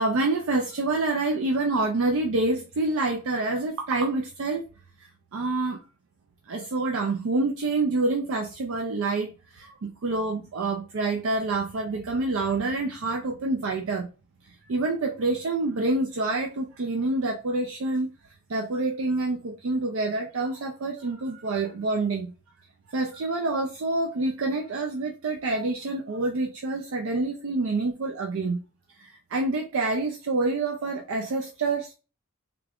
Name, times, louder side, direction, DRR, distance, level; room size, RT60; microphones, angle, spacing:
voice 1, 0.0-4.6 5.3-5.8 6.5-14.1 14.7-18.1 18.5-22.3 22.9-28.6 29.0-31.9, right 2 dB, 65° right, 0.5 m, -27 dB
3.5 x 2.4 x 3.4 m
head